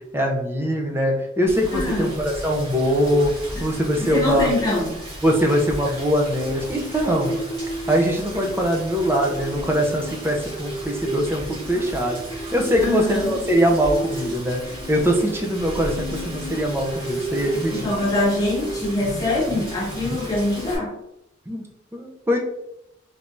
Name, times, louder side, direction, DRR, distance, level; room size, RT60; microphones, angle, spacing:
voice 1, 0.1-3.3 3.6-4.5 5.2-7.4 7.9-14.6 14.9-17.9 19.1-19.3 19.5-19.6 20.0-20.2 21.5-21.7 21.9-22.4, equal, 10° right, 1 dB, 0.5 m, -22 dB
Rain, 1.5-20.8, equal, 30° right, 1.5 m, -36 dB
voice 2, 1.7-2.1 3.5-3.7 4.0-4.9 12.8-13.3 17.7-20.9, left 2 dB, 20° left, -4 dB, 1.0 m, -24 dB
sound 1, 6.3-20.7, right 1 dB, 50° left, 0.7 m, -34 dB
3.3 x 3.2 x 2.5 m, 0.83 s
head